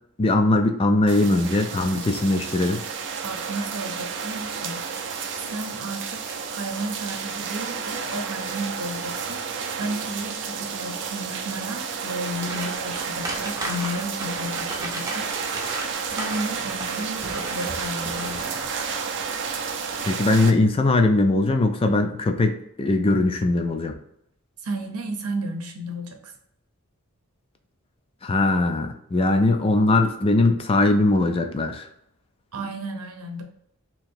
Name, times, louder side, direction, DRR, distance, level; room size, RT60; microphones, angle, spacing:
voice 1, 0.2-2.8 20.1-23.9 28.2-31.9, left 2 dB, 25° left, 6 dB, 0.4 m, -20 dB
sound 1, 1.1-20.5, right 6 dB, 55° right, 0.5 m, -31 dB
voice 2, 3.2-4.8 5.3-18.6 24.6-26.3 32.5-33.4, right 1 dB, 85° right, 4 dB, 0.8 m, -33 dB
sound 2, 12.3-19.0 19.4-19.6 20.0-20.1, right 2 dB, 15° right, 0.6 m, -35 dB
2.9 x 2.8 x 4.3 m, 0.75 s
head